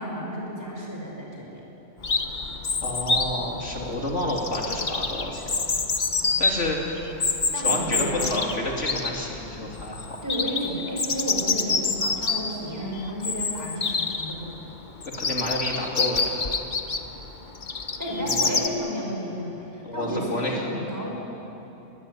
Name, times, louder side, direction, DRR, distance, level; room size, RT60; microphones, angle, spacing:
voice 1, 0.0-1.6 7.5-8.2 10.2-14.6 18.0-21.1, equal, 15° right, -2 dB, 6.0 m, -32 dB
Chirp tweet, 2.0-18.7, left 4 dB, 40° left, 1.2 m, -28 dB
voice 2, 2.8-5.6 6.4-7.1 7.5-10.2 15.0-16.3 18.2-18.5 19.8-20.6, left 1 dB, 65° left, -1 dB, 3.4 m, -30 dB
23.0 x 21.5 x 9.9 m, 3.0 s
omnidirectional pair, 1.3 m